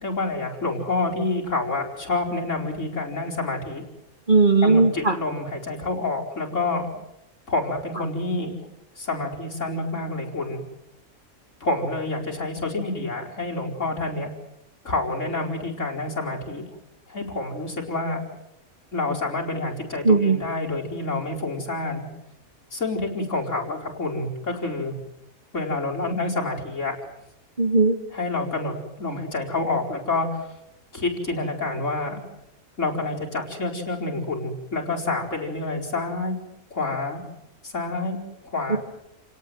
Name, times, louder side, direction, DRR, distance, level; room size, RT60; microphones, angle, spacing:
voice 1, 0.0-3.8 4.6-6.9 7.5-8.5 9.0-10.6 11.6-14.3 14.8-16.6 17.1-18.2 18.9-22.0 22.7-24.9 25.5-27.0 28.1-28.7 29.0-30.5 30.9-32.2 32.8-36.4 36.7-37.2 37.6-38.2 38.4-38.8, left 2 dB, 55° left, 0 dB, 5.0 m, -28 dB
voice 2, 4.3-5.1 20.0-20.4 27.6-27.9 38.7-38.8, right 3 dB, 35° right, 6 dB, 2.2 m, -17 dB
29.5 x 18.0 x 9.4 m, 0.86 s
omnidirectional pair, 1.5 m